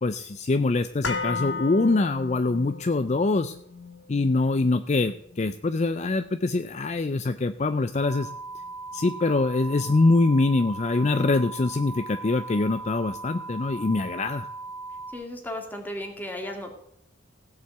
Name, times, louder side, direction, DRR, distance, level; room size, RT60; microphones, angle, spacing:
voice 1, 0.0-3.6 4.1-8.3 8.9-14.5, left 3 dB, 35° left, 10 dB, 0.4 m, -24 dB
sound 1, 1.0-9.1 9.4-9.5, left 4 dB, 70° left, 1.5 m, -37 dB
sound 2, 7.9-15.1, right 3 dB, 60° right, 2.3 m, -38 dB
voice 2, 15.1-16.7, left 1 dB, 10° left, 3 dB, 2.1 m, -35 dB
16.5 x 5.7 x 7.9 m, 0.74 s
head